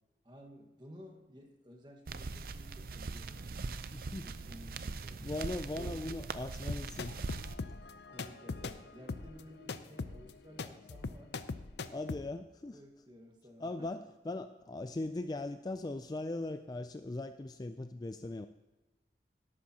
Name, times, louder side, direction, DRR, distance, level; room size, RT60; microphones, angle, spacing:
voice 1, 0.2-3.8 4.2-5.2 5.7-6.3 8.1-11.4 11.8-12.0 12.7-14.0, equal, 25° right, 2 dB, 1.5 m, -54 dB
sound 1, 2.1-7.6, right 3 dB, 55° right, 0.5 m, -41 dB
voice 2, 3.9-4.3 5.2-7.1 11.9-12.8 13.6-18.5, left 2 dB, 20° left, 9 dB, 0.3 m, -39 dB
sound 2, 6.7-12.2, left 4 dB, 75° left, 0.6 m, -41 dB
13.0 x 11.5 x 2.9 m, 1.1 s
head